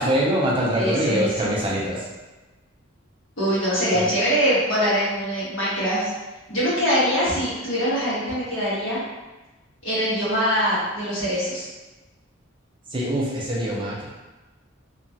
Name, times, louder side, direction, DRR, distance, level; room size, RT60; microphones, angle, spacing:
voice 1, 0.0-2.1 3.9-4.1 12.9-14.0, equal, 25° right, -4 dB, 0.5 m, -23 dB
voice 2, 0.7-1.5 3.4-6.1 6.5-9.0 9.8-11.7, equal, 75° left, -10 dB, 1.3 m, -23 dB
3.0 x 2.3 x 2.7 m, 1.1 s
head